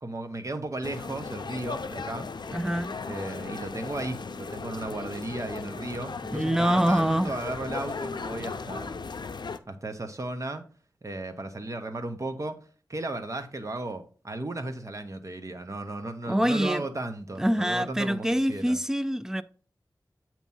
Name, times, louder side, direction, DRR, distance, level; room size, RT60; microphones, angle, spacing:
voice 1, 0.0-2.3 3.1-9.0 9.7-10.6 11.0-12.6 12.9-18.8, right 2 dB, 45° right, 0.9 m, -35 dB
sound 1, 0.8-9.6, left 4 dB, 80° left, 0.5 m, -37 dB
voice 2, 2.5-3.0 6.3-7.3 16.3-16.8 17.4-19.4, equal, 5° right, 0.4 m, -25 dB
8.4 x 3.0 x 5.5 m
wide cardioid pair, 75°, 7 cm